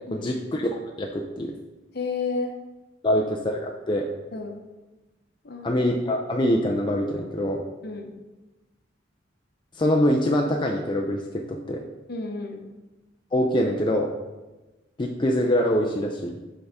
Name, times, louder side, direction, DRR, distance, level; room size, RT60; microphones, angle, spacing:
voice 1, 0.1-1.5 3.0-4.0 5.6-7.6 9.8-11.8 13.3-14.1 15.0-16.3, equal, 25° left, 0 dB, 0.4 m, -24 dB
voice 2, 1.9-2.5 4.3-4.6 5.4-5.8 7.8-8.1 12.1-12.6, left 4 dB, 55° left, 4 dB, 0.8 m, -31 dB
6.4 x 4.9 x 3.5 m, 1.1 s
head